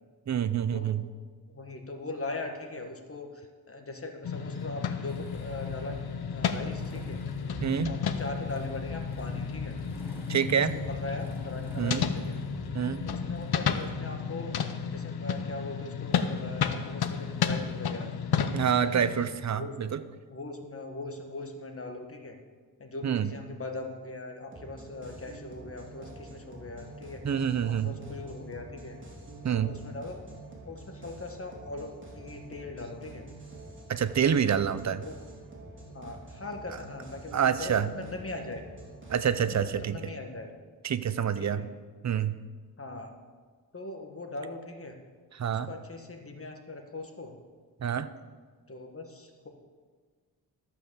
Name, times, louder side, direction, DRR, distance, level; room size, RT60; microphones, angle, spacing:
voice 1, 0.3-1.1 7.6-7.9 10.3-10.8 11.8-12.1 12.7-13.0 18.5-20.0 23.0-23.4 27.2-28.0 29.4-29.8 33.9-35.0 37.3-37.9 39.1-40.1 40.8-41.7 42.0-42.4 45.3-45.7 47.8-48.1, right 8 dB, 45° right, 13 dB, 0.6 m, -27 dB
voice 2, 1.5-7.2 7.9-9.8 10.9-12.3 13.1-18.1 18.8-19.0 19.5-22.4 22.8-27.3 27.6-29.0 29.5-30.2 30.6-33.3 35.0-35.1 35.9-38.6 39.5-40.5 41.4-41.6 42.8-43.1 43.7-44.9 45.5-47.3 48.7-49.5, left 2 dB, 35° left, 4 dB, 1.4 m, -40 dB
sound 1, 4.2-19.3, left 6 dB, 75° left, 0.7 m, -32 dB
Motorcycle / Engine starting, 5.1-13.9, left 1 dB, 5° right, 1.8 m, -45 dB
sound 2, 24.5-39.7, right 2 dB, 30° right, 3.1 m, -47 dB
13.0 x 5.8 x 6.9 m, 1.5 s
wide cardioid pair, 105°, 37 cm